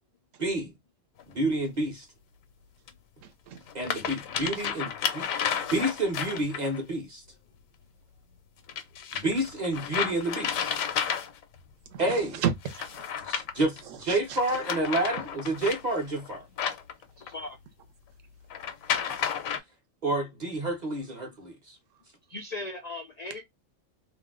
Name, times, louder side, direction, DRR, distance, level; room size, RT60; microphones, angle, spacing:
voice 1, 0.4-0.7 1.3-2.1 3.7-5.3 5.7-7.2 9.1-10.7 12.0-12.4 13.3-16.4 20.0-21.8, right 1 dB, 40° right, 0.8 m, -29 dB
sound 1, 1.2-1.3 2.9-3.0 3.6-6.8 8.7-11.6 12.6-13.8 14.3-17.5 18.5-19.6, left 8 dB, 85° left, 1.0 m, -32 dB
voice 2, 3.2-3.6 11.9-13.0 13.9-14.4, right 8 dB, 75° right, 1.0 m, -33 dB
voice 3, 17.2-17.6 22.3-23.4, left 2 dB, 70° left, 0.3 m, -38 dB
2.6 x 2.1 x 3.5 m
omnidirectional pair, 1.4 m